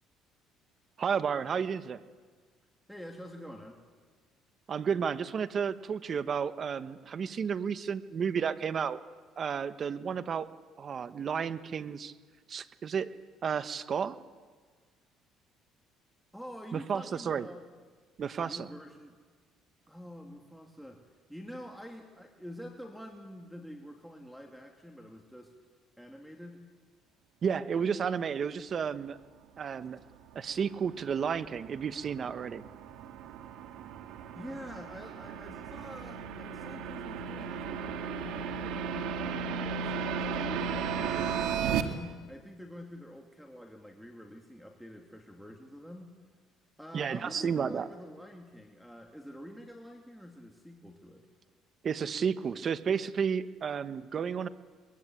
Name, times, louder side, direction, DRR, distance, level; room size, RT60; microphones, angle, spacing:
voice 1, 1.0-2.0 4.7-9.0 9.4-10.5 10.8-12.1 12.5-13.1 13.4-14.2 16.7-17.5 18.2-18.7 27.4-29.2 29.6-30.0 30.3-32.6 46.9-47.9 51.8-54.5, right 7 dB, 40° right, 13 dB, 1.2 m, -32 dB
voice 2, 2.9-3.8 16.3-17.6 18.3-19.2 19.9-21.0 21.3-25.5 26.0-26.6 34.3-46.1 46.8-51.3, equal, ahead, 2 dB, 2.7 m, -47 dB
sound 1, 30.3-41.8, right 6 dB, 80° right, 1.9 m, -35 dB
23.0 x 21.5 x 9.1 m, 1.5 s
cardioid pair, 105°, 0 cm